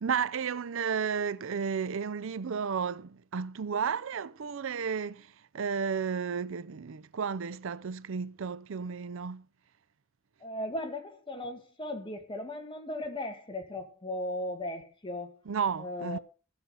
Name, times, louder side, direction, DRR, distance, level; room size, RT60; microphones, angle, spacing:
voice 1, 0.0-9.5 15.5-16.2, right 6 dB, 70° right, 0.5 m, -33 dB
voice 2, 10.4-15.4 15.8-16.2, left 1 dB, 25° left, 2.0 m, -37 dB
15.0 x 7.1 x 5.5 m
head